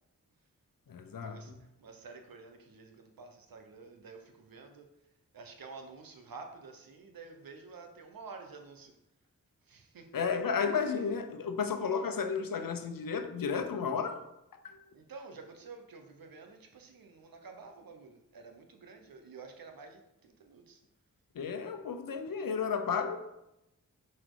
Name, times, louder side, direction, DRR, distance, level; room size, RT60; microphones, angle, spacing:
voice 1, 0.9-1.6 10.1-14.2 14.6-14.8 21.3-23.3, left 6 dB, 75° left, 0.8 m, -33 dB
voice 2, 1.8-4.9 5.3-8.9 9.7-10.0 14.9-20.8, right 4 dB, 85° right, 1.0 m, -50 dB
6.2 x 4.3 x 4.8 m
cardioid pair, 50°, 34 cm